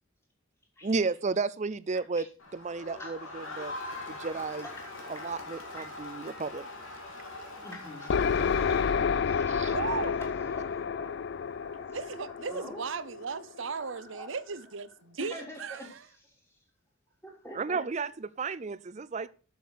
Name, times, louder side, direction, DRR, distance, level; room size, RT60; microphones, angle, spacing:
voice 1, 0.8-2.3 2.5-3.7 4.1-4.7 5.1-6.6 8.7-8.9 9.5-9.7 17.5-19.3, right 4 dB, 35° right, 0.4 m, -33 dB
Crowd, 2.4-9.2, left 2 dB, 80° left, 2.7 m, -42 dB
voice 2, 3.0-3.4 4.6-4.7 5.0-5.2 5.8-5.9 7.6-8.8 9.1-10.0 10.3-12.8 13.8-14.3 15.2-15.9 16.2-16.4 17.2-17.8, left 1 dB, 15° left, 3.2 m, -46 dB
sound 1, 8.1-13.7, left 6 dB, 55° left, 0.4 m, -30 dB
voice 3, 9.7-10.2 11.9-16.0, right 5 dB, 70° right, 0.7 m, -36 dB
7.8 x 7.2 x 6.5 m
head